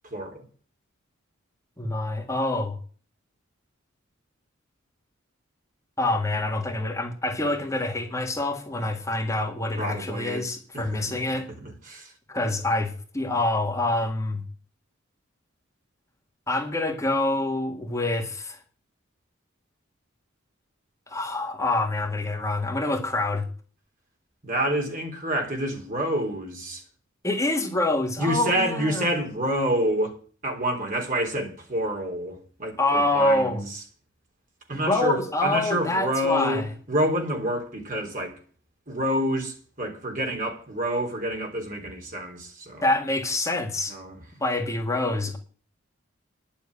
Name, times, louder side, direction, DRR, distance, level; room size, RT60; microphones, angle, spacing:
voice 1, 0.0-0.4 9.8-10.5 10.7-12.1 24.4-26.8 28.2-30.2 30.4-33.8 34.7-38.4 38.9-42.8 43.9-44.2, equal, 40° right, 3.5 m, -28 dB
voice 2, 1.8-2.8 6.0-11.5 12.3-14.4 16.5-18.6 21.1-23.5 27.2-29.1 32.8-33.6 34.7-36.7 42.8-43.9 44.4-45.4, left 2 dB, 15° left, 1.9 m, -26 dB
11.0 x 7.5 x 8.6 m
head